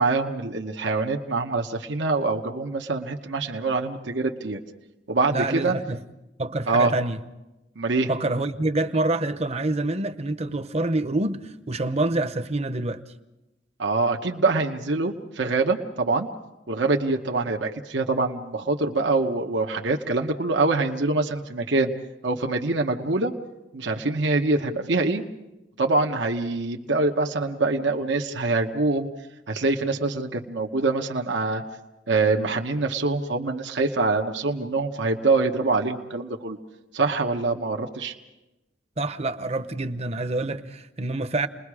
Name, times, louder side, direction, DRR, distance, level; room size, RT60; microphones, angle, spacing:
voice 1, 0.0-4.6 5.1-5.8 6.7-6.9 7.8-8.1 13.8-16.3 16.7-21.9 22.2-23.3 23.7-25.2 25.8-29.1 29.5-31.6 32.1-36.6 36.9-38.1, right 3 dB, 80° right, 1.1 m, -24 dB
voice 2, 5.3-6.0 6.4-7.2 8.1-13.0 39.0-41.5, right 2 dB, 35° right, 0.8 m, -26 dB
29.5 x 21.0 x 4.9 m
head